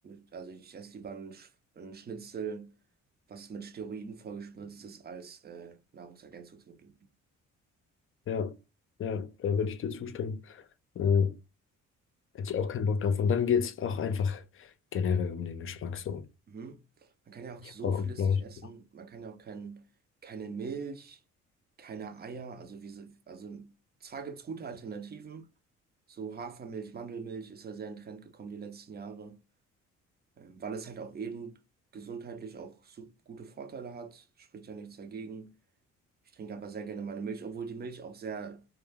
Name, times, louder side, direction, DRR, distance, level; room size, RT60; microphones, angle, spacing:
voice 1, 0.0-2.7 3.3-7.0 16.5-19.9 20.2-21.2 21.8-23.7 24.0-25.5 26.1-29.4 30.4-31.6 31.9-35.5 36.3-38.7, right 5 dB, 35° right, 0.5 m, -42 dB
voice 2, 8.3-8.6 9.0-10.7 11.0-11.4 12.3-16.2 17.8-18.4, left 6 dB, 45° left, 0.5 m, -29 dB
2.2 x 2.2 x 3.3 m
cardioid pair, 90°, 30 cm